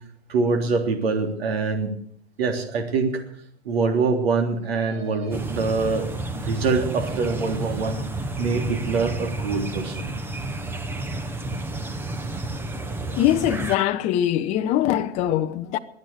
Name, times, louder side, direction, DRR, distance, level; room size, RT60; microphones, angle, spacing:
voice 1, 0.3-1.9 2.4-3.2 3.7-6.1 6.3-8.0 8.4-10.1, right 4 dB, 65° right, 3.6 m, -24 dB
sound 1, 5.3-13.8, right 2 dB, 5° right, 0.8 m, -31 dB
voice 2, 13.2-15.8, left 11 dB, 20° left, 0.6 m, -22 dB
22.0 x 9.6 x 6.5 m
hypercardioid pair, 135°, 32 cm